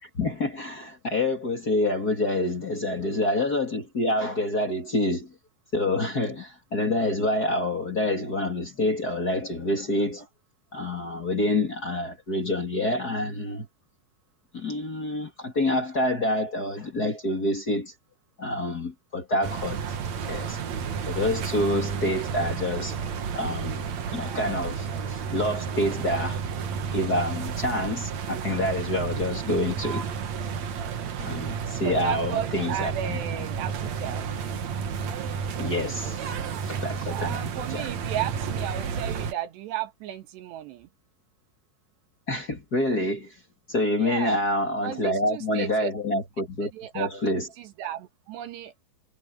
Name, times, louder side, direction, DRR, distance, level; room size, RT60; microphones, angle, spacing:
voice 1, 0.0-5.3 5.7-10.3 10.7-13.7 14.5-17.9 18.4-19.8 20.3-20.6 21.1-23.0 23.3-23.8 24.1-26.4 26.9-30.0 31.2-33.2 35.6-37.9 42.3-43.3 43.7-47.4, left 1 dB, 25° left, 2.5 m, -27 dB
sound 1, 19.4-39.3, right 6 dB, 55° right, 2.4 m, -31 dB
voice 2, 31.8-34.3 37.1-40.9 44.0-44.4 44.8-45.9 46.7-48.7, right 11 dB, 90° right, 3.9 m, -34 dB
omnidirectional pair, 4.7 m